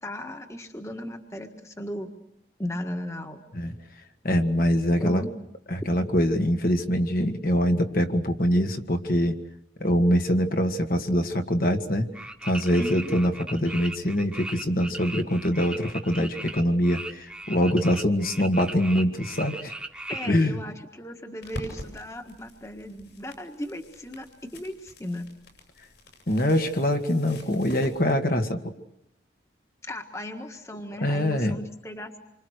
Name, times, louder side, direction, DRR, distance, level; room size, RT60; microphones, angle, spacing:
voice 1, 0.0-2.1 2.6-3.4 5.0-5.3 12.8-13.1 20.1-25.3 29.8-32.2, left 1 dB, 15° left, 5 dB, 1.6 m, -36 dB
voice 2, 4.2-5.2 5.7-9.3 9.8-12.1 12.4-19.7 20.3-20.6 26.3-28.7 31.0-31.6, equal, 50° left, 5 dB, 1.8 m, -24 dB
sound 1, 12.1-20.3, right 2 dB, 5° right, 1.5 m, -38 dB
sound 2, 21.4-28.1, equal, 70° left, 7.3 m, -45 dB
27.5 x 25.0 x 6.5 m, 0.81 s
head